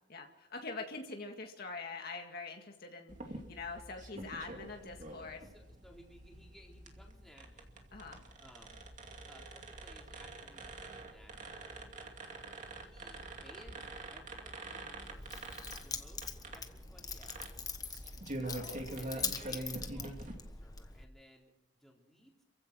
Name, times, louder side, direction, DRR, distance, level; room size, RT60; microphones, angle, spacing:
voice 1, 0.1-5.4 7.9-8.2 18.4-18.8, left 3 dB, 55° left, 3 dB, 1.9 m, -44 dB
sound 1, 3.1-20.3, right 2 dB, 40° right, 2.4 m, -46 dB
voice 2, 5.4-7.7 8.4-8.8 9.3-11.7 12.8-15.5 15.8-16.2 16.5-17.6 19.0-21.5 21.8-22.4, equal, ahead, -1 dB, 4.0 m, -60 dB
Keys jangling, 15.0-21.0, left 5 dB, 20° left, 1.3 m, -43 dB
28.0 x 15.5 x 6.2 m, 0.92 s
head